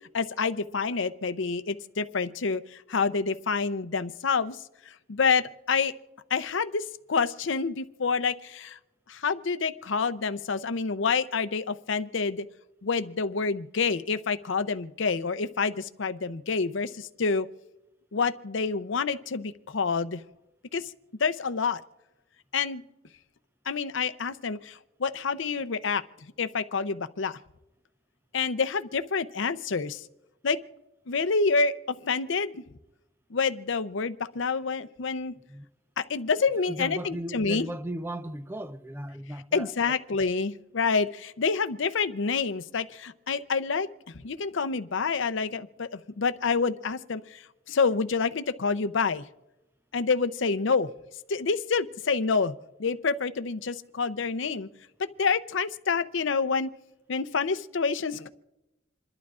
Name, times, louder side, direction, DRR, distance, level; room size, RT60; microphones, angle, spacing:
voice 1, 0.1-2.6 2.9-4.6 5.1-5.9 6.3-8.8 9.1-12.5 12.8-17.5 18.1-20.2 20.7-20.8 21.2-21.8 22.5-22.8 23.7-26.0 26.4-27.4 28.3-30.0 30.4-30.6 31.1-32.6 33.3-35.3 36.0-37.7 39.5-43.9 44.2-47.4 47.7-49.2 49.9-50.9 51.3-52.5 52.8-54.7 55.2-56.7 57.1-58.3, left 5 dB, 75° left, 0.6 m, -27 dB
voice 2, 36.7-39.7, right 1 dB, 10° right, 0.4 m, -36 dB
28.0 x 12.0 x 2.5 m
head